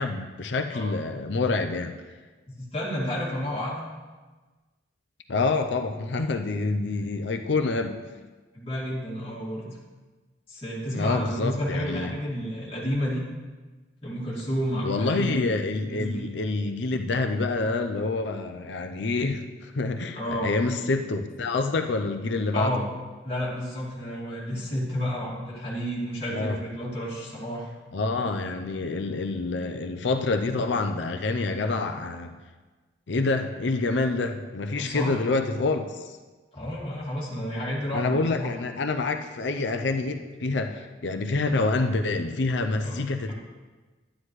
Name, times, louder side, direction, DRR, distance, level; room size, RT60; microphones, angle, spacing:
voice 1, 0.0-2.0 5.3-8.0 10.9-12.1 14.8-22.8 26.3-26.6 27.9-32.3 33.1-36.2 37.9-43.3, left 3 dB, 75° left, 6 dB, 0.6 m, -27 dB
voice 2, 2.5-3.9 8.5-9.8 10.5-13.2 14.0-15.4 15.9-16.2 20.1-20.5 22.5-22.9 23.2-27.7 34.8-35.2 36.5-38.5 42.8-43.0 43.3-43.4, equal, 30° left, -6 dB, 2.4 m, -31 dB
11.5 x 9.6 x 3.2 m, 1.3 s
head